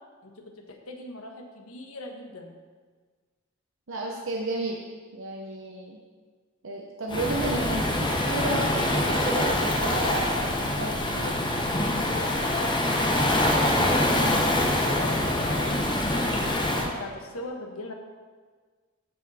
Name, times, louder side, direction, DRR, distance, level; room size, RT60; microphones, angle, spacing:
voice 1, 0.2-2.5 12.1-17.9, left 2 dB, 85° left, 3 dB, 1.3 m, -38 dB
voice 2, 3.9-4.8 5.1-6.0 6.6-11.4, right 2 dB, 65° right, 0 dB, 0.8 m, -32 dB
Waves surf, 7.1-16.9, left 1 dB, 20° left, 1.0 m, -25 dB
14.0 x 5.3 x 4.2 m, 1.5 s
head